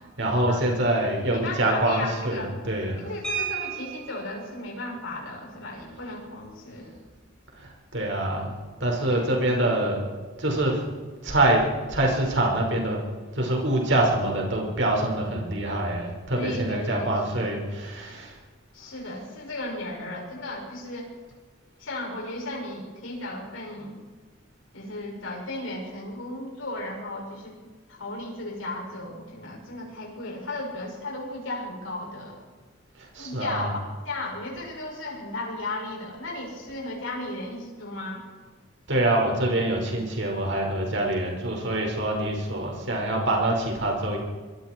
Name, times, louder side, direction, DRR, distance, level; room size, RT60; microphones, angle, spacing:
voice 1, 0.2-3.0 7.6-8.5 8.8-10.0 10.4-10.8 11.2-13.0 13.4-18.3 33.1-33.7 38.9-44.2, right 1 dB, 65° right, 0 dB, 5.7 m, -25 dB
voice 2, 1.3-2.5 3.0-7.0 9.1-9.3 15.1-15.2 16.3-17.4 18.7-21.1 21.8-24.0 24.7-27.5 27.9-32.4 33.2-38.2, left 2 dB, 90° left, -2 dB, 6.9 m, -35 dB
sound 1, 3.2-4.3 5.8-5.9 6.2-6.4 6.8-7.1, right 7 dB, 5° left, 7.8 m, -33 dB
25.5 x 22.0 x 4.7 m, 1.4 s
head